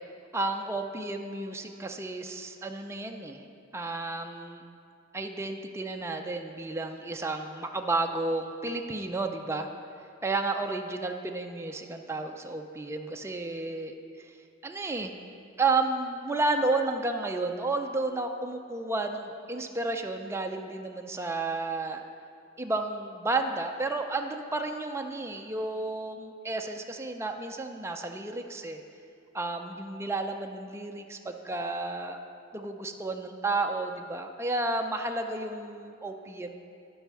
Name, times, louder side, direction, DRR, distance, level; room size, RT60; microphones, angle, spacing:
voice 1, 0.3-3.4 3.7-4.6 5.1-9.7 10.2-13.9 14.6-15.2 15.6-22.0 22.6-28.8 29.3-32.2 32.5-36.6, right 2 dB, 15° right, 4 dB, 0.4 m, -32 dB
10.0 x 5.5 x 6.1 m, 2.4 s
head